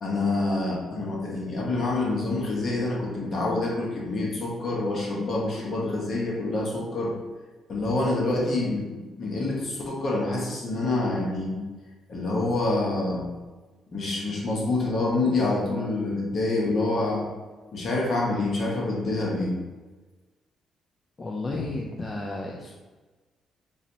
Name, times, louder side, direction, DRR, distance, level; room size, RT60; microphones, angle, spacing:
voice 1, 0.0-7.1 7.7-11.6 12.1-13.3 13.9-17.3 17.7-19.5, left 2 dB, 50° left, -2 dB, 1.0 m, -27 dB
voice 2, 21.2-22.7, left 2 dB, 30° left, -2 dB, 0.4 m, -32 dB
3.9 x 2.6 x 2.9 m, 1.2 s
cardioid pair, 90°, 0 cm